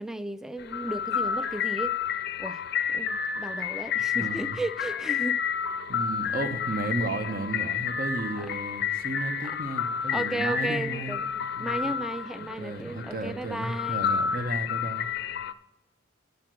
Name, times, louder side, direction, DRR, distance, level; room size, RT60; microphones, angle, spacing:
voice 1, 0.0-2.0 2.4-2.6 2.9-5.4 8.4-8.5 10.1-14.0, right 1 dB, 5° right, 0.4 m, -34 dB
sound 1, 0.6-15.5, left 7 dB, 55° left, 0.5 m, -30 dB
voice 2, 4.1-4.6 5.9-11.2 11.6-11.9 12.6-15.1, right 2 dB, 50° right, 0.9 m, -34 dB
9.6 x 6.6 x 7.5 m
head